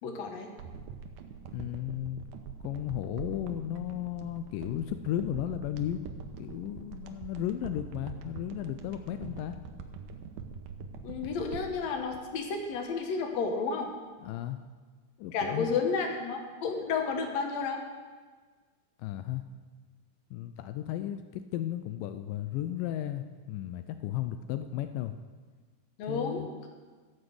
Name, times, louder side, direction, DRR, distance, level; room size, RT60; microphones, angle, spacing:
voice 1, 0.0-0.5 11.0-13.9 15.3-17.8 26.0-26.7, left 5 dB, 60° left, 3 dB, 2.2 m, -32 dB
sound 1, 0.6-13.0 13.3-13.4, right 6 dB, 80° right, 2.3 m, -44 dB
voice 2, 1.5-2.2 2.6-6.0 6.4-9.6 14.2-14.6 15.2-15.8 19.0-19.5 20.3-25.1 26.1-26.5, left 12 dB, 85° left, 9 dB, 2.2 m, -34 dB
14.5 x 5.2 x 7.8 m, 1.4 s
omnidirectional pair, 3.8 m